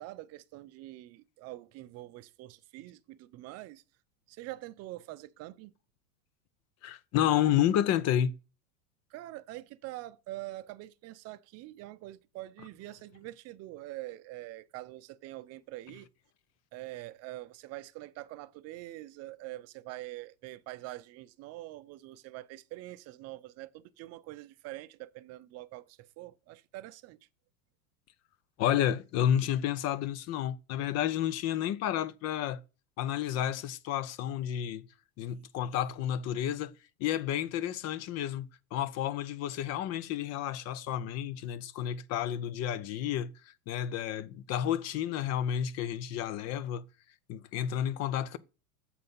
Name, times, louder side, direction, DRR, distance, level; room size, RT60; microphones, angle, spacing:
voice 1, 0.0-3.8 4.3-5.7 9.1-16.1 16.7-27.2, right 17 dB, 35° right, 0.6 m, -45 dB
voice 2, 6.8-8.3 28.6-32.6 33.0-34.8 35.2-36.7 37.0-43.3 43.7-46.8 47.3-48.4, left 10 dB, 35° left, 0.6 m, -31 dB
7.7 x 4.2 x 5.3 m
hypercardioid pair, 100°, 44 cm